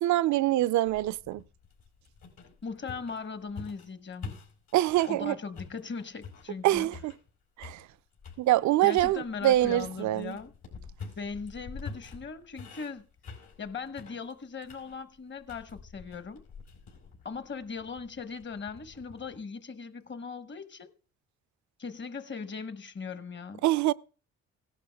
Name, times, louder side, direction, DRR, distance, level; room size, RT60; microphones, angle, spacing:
voice 1, 0.0-1.4 4.7-5.4 6.6-7.1 7.6-7.8 8.4-10.4 23.6-23.9, right 15 dB, 70° right, 0.5 m, -25 dB
sound 1, 0.9-5.2 5.5-7.3 7.6-8.4 8.9-19.4, left 5 dB, 80° left, 4.6 m, -47 dB
voice 2, 2.6-4.4 5.1-6.9 8.8-10.5 11.2-13.0 13.6-16.4 17.2-20.9 21.8-23.6, left 5 dB, 40° left, 1.1 m, -39 dB
17.0 x 11.5 x 2.2 m
cardioid pair, 90°, 30 cm